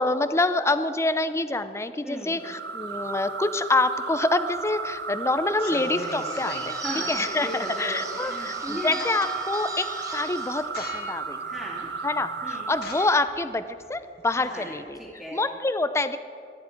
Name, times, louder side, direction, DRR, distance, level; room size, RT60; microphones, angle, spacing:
voice 1, 0.0-6.8 7.1-11.4 12.0-15.0 15.3-16.2, left 2 dB, 15° left, 12 dB, 0.5 m, -26 dB
voice 2, 2.0-2.4 6.7-9.0 11.4-11.9 12.4-12.7 14.4-15.4, equal, ahead, -6 dB, 2.4 m, -37 dB
sound 1, 2.4-13.3, right 5 dB, 65° right, 0.8 m, -34 dB
sound 2, 4.5-5.0 5.5-6.7 8.3-8.4 8.7-9.7 10.1-10.4 10.7-11.3 11.8-11.9 12.7-15.1, left 3 dB, 60° left, 1.7 m, -39 dB
Bird / Bell, 5.7-10.7, right 3 dB, 20° right, 1.3 m, -38 dB
22.0 x 11.0 x 4.5 m, 2.4 s
head